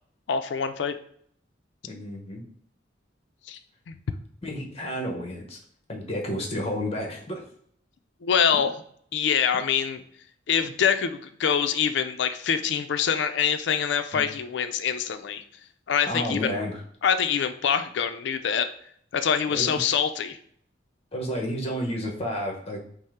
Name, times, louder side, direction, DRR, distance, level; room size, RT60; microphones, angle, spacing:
voice 1, 0.3-0.9 3.5-3.6 3.9-4.0 8.2-8.7 9.1-10.0 10.5-15.4 15.9-16.5 17.0-18.7 19.1-20.4, left 7 dB, 65° left, 9 dB, 0.4 m, -25 dB
voice 2, 1.8-2.4 4.4-5.6 5.9-7.5 14.1-14.3 16.1-16.8 19.5-19.8 21.1-22.8, equal, 35° left, 1 dB, 0.8 m, -31 dB
5.3 x 2.0 x 3.5 m, 0.62 s
head